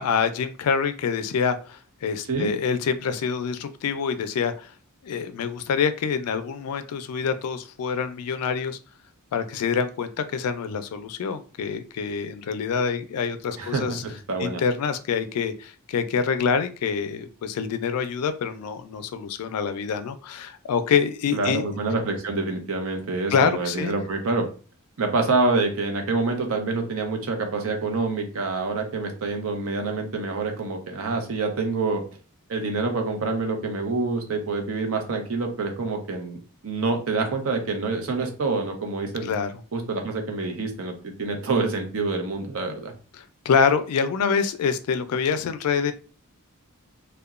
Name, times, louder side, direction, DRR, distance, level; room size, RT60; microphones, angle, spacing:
voice 1, 0.0-4.7 5.0-8.8 9.3-14.0 14.4-21.6 23.3-23.9 39.2-39.5 43.1-45.9, left 6 dB, 80° left, 11 dB, 0.3 m, -26 dB
voice 2, 13.6-14.6 21.3-24.5 25.0-32.0 32.5-36.4 36.6-39.3 39.7-42.9, right 3 dB, 65° right, 4 dB, 0.6 m, -26 dB
2.8 x 2.1 x 2.4 m, 0.37 s
head